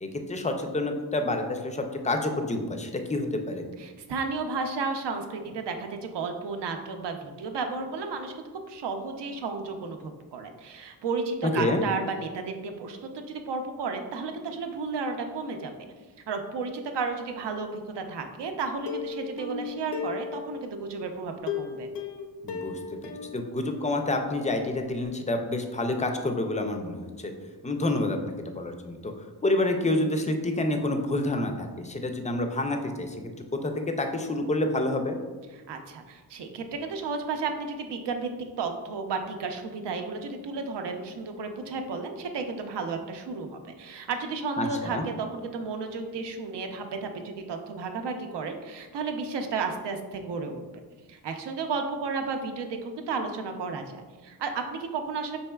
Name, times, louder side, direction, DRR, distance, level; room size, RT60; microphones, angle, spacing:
voice 1, 0.0-3.6 11.4-11.8 22.4-27.3 27.6-29.1 29.4-33.2 33.6-35.2 44.6-45.1, left 2 dB, 20° left, 5 dB, 0.3 m, -28 dB
voice 2, 3.8-15.7 16.3-21.9 35.7-38.3 38.6-50.6 51.1-55.4, right 4 dB, 85° right, 5 dB, 0.6 m, -33 dB
Plucked string instrument, 18.9-20.8 21.5-24.3 24.6-24.7 25.0-25.1, left 6 dB, 90° left, 0.6 m, -36 dB
5.4 x 4.1 x 2.2 m, 1.3 s
wide cardioid pair, 165°, 41 cm